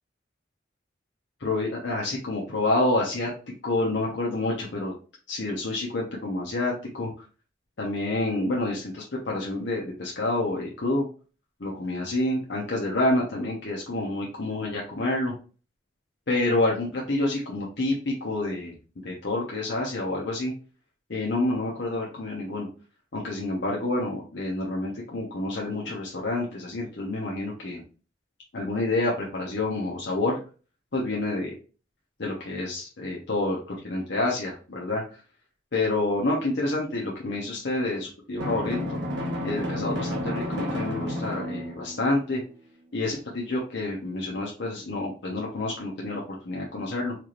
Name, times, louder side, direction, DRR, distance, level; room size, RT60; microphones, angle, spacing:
voice 1, 1.4-5.0 5.3-7.2 7.8-11.1 11.6-15.3 16.3-18.8 19.0-20.5 21.1-22.7 23.1-27.8 28.5-30.4 30.9-31.5 32.2-35.2 35.7-39.0 39.4-42.4 42.9-47.1, left 2 dB, 70° left, -2 dB, 0.8 m, -28 dB
Drum, 38.4-42.1, left 1 dB, 70° right, 1.0 m, -31 dB
4.5 x 2.5 x 3.0 m, 0.36 s
head